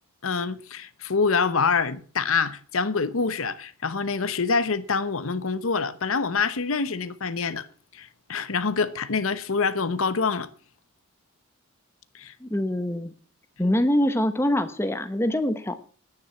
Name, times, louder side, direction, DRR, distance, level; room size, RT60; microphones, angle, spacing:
voice 1, 0.2-7.7 7.9-10.5 12.1-12.3, left 5 dB, 80° left, 0.9 m, -26 dB
voice 2, 12.4-13.1 13.6-15.7, left 1 dB, 10° left, 0.9 m, -24 dB
10.0 x 9.5 x 6.9 m
head